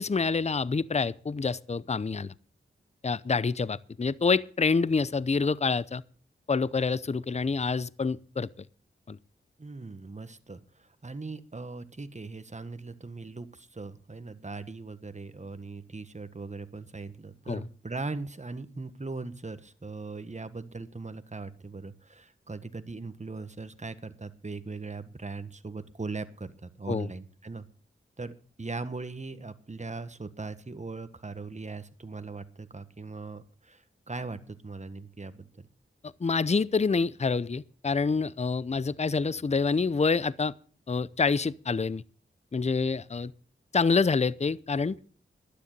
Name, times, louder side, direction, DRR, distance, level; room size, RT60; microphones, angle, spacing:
voice 1, 0.0-2.3 3.0-6.0 6.5-8.5 9.1-9.2 17.5-17.6 26.9-27.1 36.0-40.5 40.9-42.0 42.5-43.3 43.7-45.0, left 4 dB, 30° left, 0.6 m, -27 dB
voice 2, 9.6-27.6 28.2-35.7, right 3 dB, 35° right, 1.5 m, -40 dB
12.0 x 10.0 x 6.7 m
cardioid pair, 45°, 21 cm